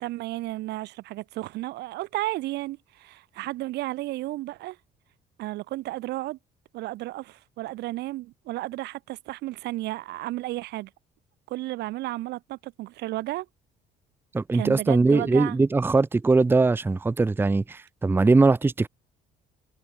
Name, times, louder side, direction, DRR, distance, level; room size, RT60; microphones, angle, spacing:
voice 1, 0.0-4.8 5.4-6.4 6.7-10.9 11.5-13.5 14.5-15.6, right 17 dB, 80° right, 1.8 m, -33 dB
voice 2, 14.3-18.9, right 3 dB, 15° right, 0.6 m, -21 dB
cardioid pair, 110°, 17 cm